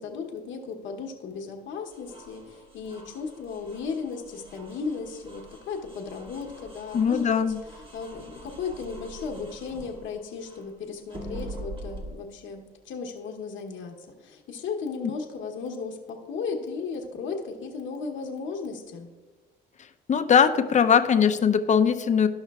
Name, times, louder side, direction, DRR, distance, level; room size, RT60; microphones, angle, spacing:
voice 1, 0.0-19.1, left 5 dB, 75° left, 1 dB, 0.9 m, -35 dB
sound 1, 1.9-10.7 11.1-12.1, right 1 dB, 25° right, 1.5 m, -44 dB
voice 2, 6.9-7.6 20.1-22.3, left 7 dB, 40° left, 8 dB, 0.5 m, -20 dB
13.0 x 5.6 x 2.3 m, 1.3 s
cardioid pair, 90°, 20 cm